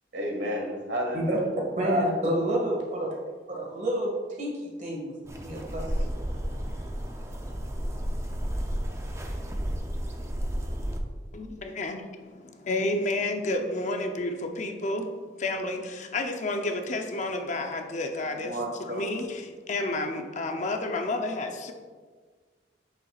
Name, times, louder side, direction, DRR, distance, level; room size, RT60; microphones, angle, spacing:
voice 1, 0.1-1.4 1.7-2.1 18.3-19.2, equal, 75° right, 0 dB, 1.6 m, -31 dB
voice 2, 1.8-3.1 3.5-4.1 4.4-5.1 5.4-6.2, right 1 dB, 45° right, -2 dB, 1.9 m, -29 dB
sound 1, 5.3-11.0, equal, 15° right, 0.6 m, -32 dB
voice 3, 11.3-15.1 15.4-18.5 18.9-19.4 19.7-21.7, left 2 dB, 45° left, 5 dB, 0.6 m, -30 dB
8.4 x 6.8 x 2.4 m, 1.5 s
head